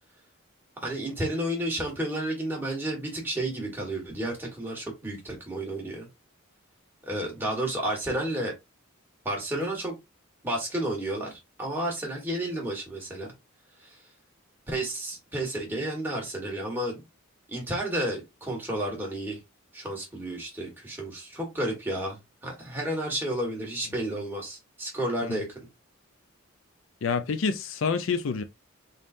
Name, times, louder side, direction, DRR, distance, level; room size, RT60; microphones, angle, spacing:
voice 1, 0.8-6.1 7.0-8.5 9.2-9.9 10.4-13.3 13.8-14.0 14.7-17.0 17.5-19.4 19.7-25.5, right 1 dB, 10° right, 1.5 m, -31 dB
voice 2, 27.0-28.4, left 5 dB, 65° left, 0.4 m, -27 dB
3.9 x 3.6 x 2.5 m
head